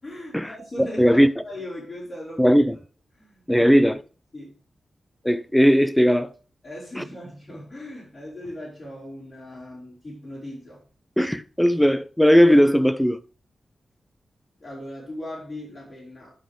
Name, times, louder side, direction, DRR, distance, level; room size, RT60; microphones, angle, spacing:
voice 1, 0.0-1.2 1.4-2.6 3.1-3.8 4.3-4.5 6.6-10.8 14.6-16.3, left 1 dB, 35° left, 5.0 m, -38 dB
voice 2, 0.8-1.3 2.4-2.8 3.5-4.0 5.2-6.3 7.0-7.1 11.2-13.2, equal, 5° left, 0.4 m, -18 dB
11.5 x 5.2 x 3.7 m
wide cardioid pair, 140°, 0 cm